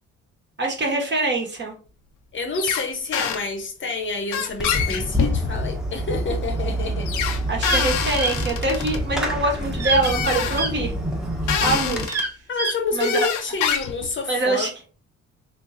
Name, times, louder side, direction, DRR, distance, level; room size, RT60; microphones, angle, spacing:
voice 1, 0.6-1.8 7.5-10.9 11.6-12.3 12.9-13.3 14.3-14.7, right 2 dB, 35° right, 1.4 m, -24 dB
voice 2, 2.3-7.1 12.5-14.7, left 3 dB, 40° left, 0.8 m, -28 dB
sound 1, 2.5-2.9 3.1-3.4 4.3-5.7 7.1-9.0 10.0-10.6 11.5-12.2 13.0-14.1, left 8 dB, 85° left, 0.6 m, -26 dB
Fireworks, 4.6-12.0, equal, ahead, 0.9 m, -27 dB
sound 2, 7.6-7.9 8.1-8.3 9.8-10.1 10.5-10.7 12.1-12.8, right 3 dB, 55° right, 1.0 m, -25 dB
3.5 x 3.2 x 2.5 m
cardioid pair, 90°, 30 cm